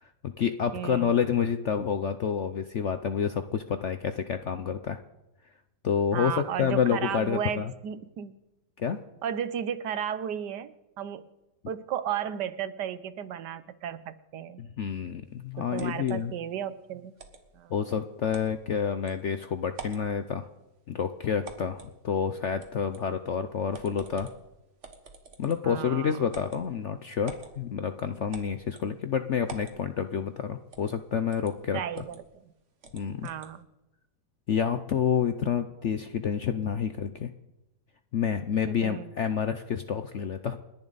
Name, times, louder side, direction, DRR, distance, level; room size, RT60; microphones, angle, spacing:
voice 1, 0.0-5.0 5.8-7.7 8.8-9.0 14.6-16.3 17.7-20.4 20.9-24.3 25.4-32.0 32.9-33.3 34.5-37.3 38.1-40.6, left 7 dB, 65° left, 9 dB, 0.7 m, -29 dB
voice 2, 0.7-1.1 6.1-8.4 9.2-11.3 11.7-14.6 15.6-17.1 17.5-17.7 25.6-26.2 31.7-32.2 33.2-33.7 38.8-39.1, right 9 dB, 70° right, 13 dB, 1.4 m, -34 dB
sound 1, 15.8-16.2 17.2-17.4 18.3-18.5 19.1-19.2 19.7-20.1 21.4-21.9 22.6-23.1 23.7-24.4 24.8-25.7 26.3-26.6 27.3-27.5 28.3-28.9 29.5-29.8 30.7-31.0 31.3-31.5 32.0-32.2 32.8-33.5, right 5 dB, 40° right, 1.7 m, -46 dB
29.0 x 11.0 x 4.0 m, 0.98 s
omnidirectional pair, 2.0 m